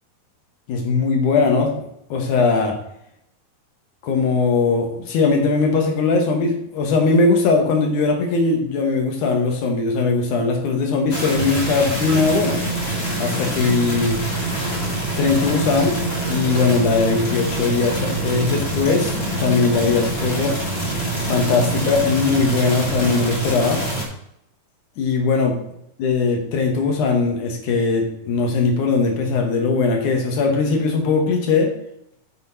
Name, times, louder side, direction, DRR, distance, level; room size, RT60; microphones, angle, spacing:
voice 1, 0.7-1.7 2.1-2.8 4.0-12.6 13.2-14.2 15.2-16.0 16.3-19.1 19.4-20.5 21.2-23.8 25.0-25.6 26.0-31.7, left 4 dB, 65° left, 2 dB, 2.8 m, -19 dB
sound 1, 11.1-24.0, right 2 dB, 35° left, 1.0 m, -25 dB
8.5 x 6.3 x 4.1 m, 0.77 s
omnidirectional pair, 4.1 m